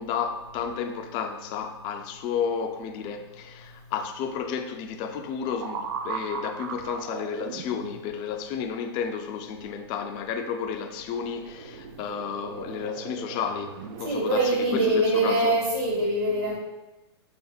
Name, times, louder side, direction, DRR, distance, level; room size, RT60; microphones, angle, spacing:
voice 1, 0.0-14.4 14.7-15.6, left 7 dB, 30° left, 0.4 m, -32 dB
sound 1, 5.5-8.1 11.0-14.9 15.5-15.7, right 6 dB, 55° right, 0.4 m, -38 dB
voice 2, 14.0-16.6, right 1 dB, 70° right, 1.2 m, -24 dB
4.3 x 3.4 x 2.3 m
hypercardioid pair, 130°, 14 cm